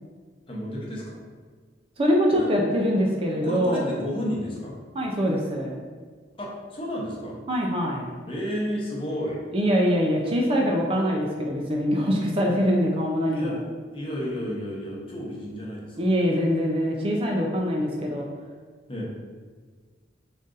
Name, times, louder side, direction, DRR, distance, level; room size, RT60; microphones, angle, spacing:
voice 1, 0.5-1.2 2.3-2.5 3.4-4.7 6.3-7.3 8.3-9.4 13.3-13.6 13.9-16.1 18.9-19.1, equal, 30° left, -4 dB, 0.8 m, -32 dB
voice 2, 2.0-3.8 4.9-5.8 7.5-8.1 9.5-13.6 16.0-18.3, equal, 30° right, 0 dB, 0.4 m, -23 dB
3.9 x 2.5 x 3.7 m, 1.5 s
head